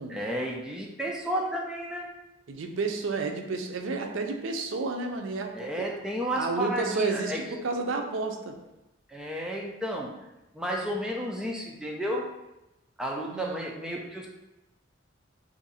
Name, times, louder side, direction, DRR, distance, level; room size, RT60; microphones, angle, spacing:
voice 1, 0.1-2.0 5.5-7.6 9.1-10.1 10.5-12.3 13.0-14.3, equal, 5° right, -1 dB, 0.3 m, -32 dB
voice 2, 2.5-5.9 6.4-8.6 13.3-13.6, right 3 dB, 75° right, 4 dB, 0.4 m, -31 dB
2.7 x 2.5 x 4.0 m, 0.95 s
head